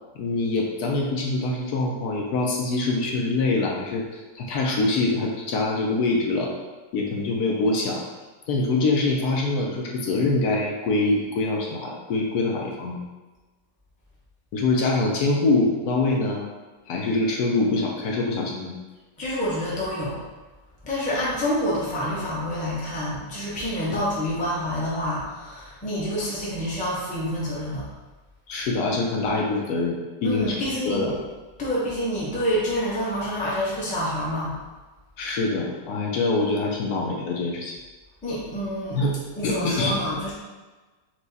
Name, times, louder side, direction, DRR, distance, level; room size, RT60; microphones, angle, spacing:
voice 1, 0.2-4.1 4.3-6.5 6.9-8.0 8.5-13.0 14.5-16.5 16.9-18.7 28.5-30.6 30.8-31.2 35.2-37.7 38.9-39.1 39.4-40.0, left 2 dB, 70° left, -1 dB, 1.1 m, -24 dB
voice 2, 19.2-20.2 20.8-27.9 30.2-31.1 31.6-34.6 38.2-39.0 39.4-40.3, equal, 5° left, -7 dB, 0.6 m, -27 dB
4.6 x 2.2 x 4.0 m, 1.2 s
omnidirectional pair, 1.8 m